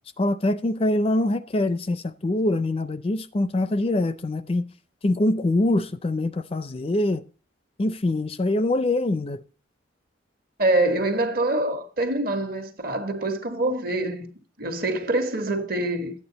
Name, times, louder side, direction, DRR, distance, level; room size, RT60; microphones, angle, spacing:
voice 1, 0.2-4.7 5.0-7.2 7.8-9.4, left 1 dB, 30° left, 0.4 m, -24 dB
voice 2, 10.6-14.3 14.6-16.1, right 2 dB, 50° right, 1.4 m, -25 dB
12.0 x 8.8 x 3.9 m
head